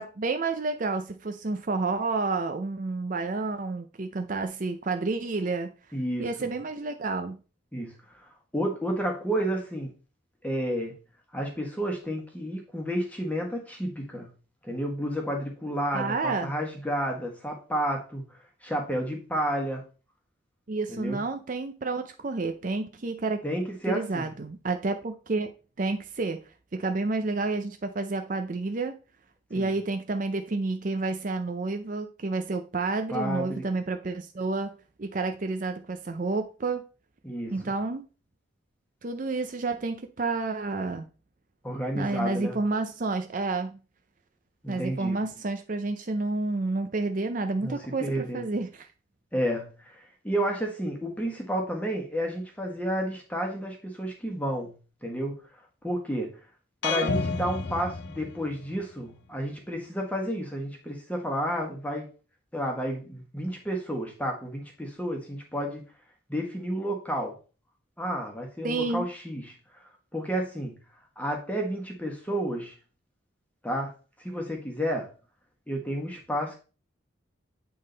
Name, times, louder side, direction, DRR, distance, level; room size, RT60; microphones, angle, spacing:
voice 1, 0.0-5.7 6.2-7.4 15.9-16.5 20.7-23.4 23.9-25.5 25.8-26.4 26.7-29.0 29.5-34.7 35.0-36.8 37.5-38.1 39.0-41.0 41.9-43.7 44.7-48.9 68.6-69.1, right 3 dB, 40° right, 0.5 m, -30 dB
voice 2, 5.9-6.5 7.7-9.9 10.4-10.9 11.3-14.3 14.6-18.2 18.6-19.8 20.9-21.2 23.4-24.3 29.5-29.7 33.1-33.6 37.2-37.7 41.6-42.6 44.6-45.2 47.6-48.4 49.3-54.7 55.0-55.4 55.8-56.4 56.8-62.1 62.5-65.8 66.3-67.4 68.0-69.8 70.1-70.7 71.2-72.7 73.6-73.9 74.2-75.1 75.7-76.6, equal, 5° left, 1.4 m, -31 dB
sound 1, 56.8-58.8, left 4 dB, 55° left, 0.6 m, -31 dB
8.6 x 3.6 x 3.9 m
head